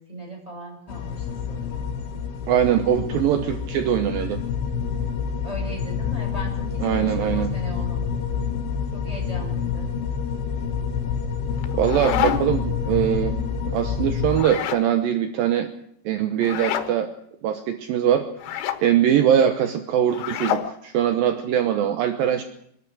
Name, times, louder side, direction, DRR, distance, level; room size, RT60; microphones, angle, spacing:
voice 1, 0.0-1.9 5.4-8.0 8.9-9.9 19.0-19.2, right 1 dB, 5° right, 1 dB, 7.8 m, -38 dB
sound 1, 0.9-14.4, left 6 dB, 70° left, 3.7 m, -28 dB
voice 2, 2.5-4.4 6.8-7.5 11.7-13.4 13.7-15.7 16.1-17.1 17.4-18.3 18.8-22.4, right 10 dB, 70° right, 8 dB, 2.3 m, -22 dB
sound 2, 11.6-12.7 14.3-14.9 16.4-16.9 18.4-18.8 20.1-20.7, left 10 dB, 90° left, 4.0 m, -27 dB
25.0 x 12.5 x 10.0 m, 0.72 s
omnidirectional pair, 5.4 m